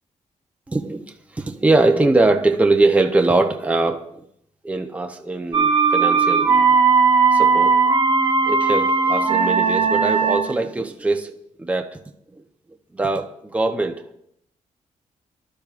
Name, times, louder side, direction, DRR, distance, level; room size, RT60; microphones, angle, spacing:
voice 1, 0.7-1.1 1.3-4.2 4.6-6.8 7.3-7.8 8.5-12.0 12.9-14.0, right 2 dB, 10° right, 0.8 m, -21 dB
sound 1, 5.5-10.6, right 5 dB, 35° right, 1.4 m, -17 dB
23.5 x 12.0 x 2.5 m
wide cardioid pair, 150°, 13 cm